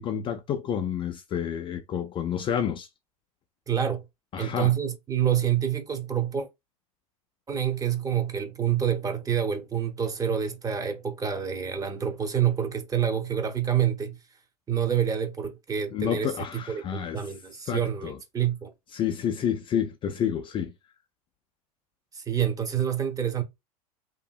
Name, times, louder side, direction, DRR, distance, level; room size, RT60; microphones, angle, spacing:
voice 1, 0.0-2.9 4.3-4.7 15.9-17.2 17.7-18.2 18.9-20.7, left 8 dB, 25° left, 0.3 m, -29 dB
voice 2, 3.7-4.0 4.4-6.5 7.5-14.2 14.7-16.3 16.7-18.7 22.1-23.4, right 9 dB, 20° right, 0.7 m, -27 dB
2.8 x 2.6 x 2.3 m
hypercardioid pair, 95°, 19 cm